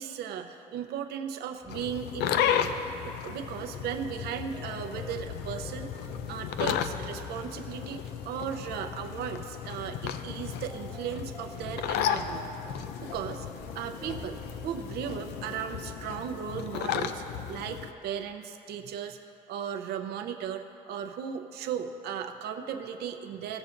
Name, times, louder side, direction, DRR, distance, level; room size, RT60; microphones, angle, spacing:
voice 1, 0.0-12.5 13.0-13.5 13.7-19.2 19.5-23.6, right 8 dB, 75° right, 6 dB, 0.7 m, -36 dB
sound 1, 1.6-18.4, right 1 dB, 5° right, 0.4 m, -50 dB
sound 2, 1.7-17.9, left 9 dB, 85° left, 0.4 m, -34 dB
17.0 x 7.0 x 2.6 m, 2.9 s
cardioid pair, 110°, 17 cm